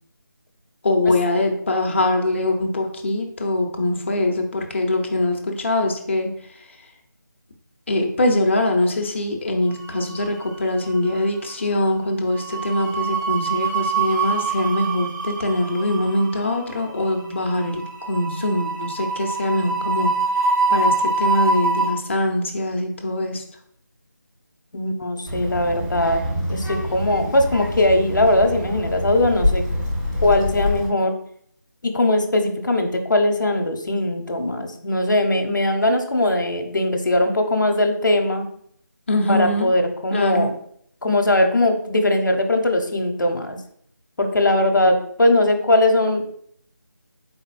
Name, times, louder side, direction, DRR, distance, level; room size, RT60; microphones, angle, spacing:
voice 1, 0.8-6.3 6.6-6.7 7.9-20.1 20.4-23.4 39.1-39.7 40.1-40.5, left 1 dB, 35° left, 3 dB, 0.7 m, -23 dB
sound 1, 9.8-10.6 10.9-11.1 12.3-21.9, right 4 dB, 60° right, 1.5 m, -25 dB
voice 2, 24.7-26.2 26.5-29.6 30.2-31.1 31.8-38.5 39.3-40.5 41.0-43.6 44.2-46.3, left 1 dB, 70° left, 5 dB, 0.9 m, -20 dB
Child speech kid speaking, 25.3-30.9, left 1 dB, 20° right, 1.3 m, -26 dB
4.3 x 4.1 x 2.5 m, 0.65 s
figure-of-eight pair, 165°, 11 cm